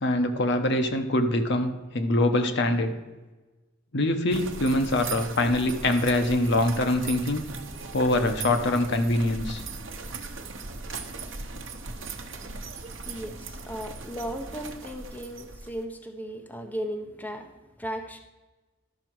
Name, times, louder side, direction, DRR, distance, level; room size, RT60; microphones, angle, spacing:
voice 1, 0.0-2.9 3.9-7.4 7.9-9.6, left 1 dB, 60° left, 7 dB, 0.9 m, -24 dB
sound 1, 4.3-15.8, right 4 dB, 65° right, 0.9 m, -38 dB
voice 2, 13.1-18.2, equal, 10° left, 4 dB, 0.7 m, -36 dB
12.0 x 6.0 x 4.6 m, 1.2 s
head